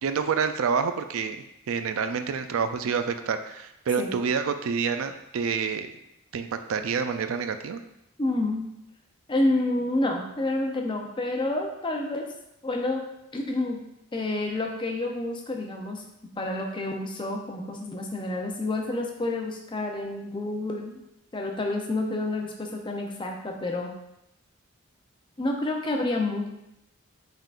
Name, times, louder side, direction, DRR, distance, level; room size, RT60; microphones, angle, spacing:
voice 1, 0.0-5.9 6.3-7.8, right 6 dB, 70° right, 9 dB, 0.4 m, -28 dB
voice 2, 8.2-8.7 9.3-12.3 12.6-13.0 13.3-13.8 14.1-16.0 16.4-21.0 21.3-23.9 25.4-26.5, left 2 dB, 20° left, 2 dB, 0.5 m, -29 dB
5.5 x 3.6 x 2.4 m, 0.84 s
head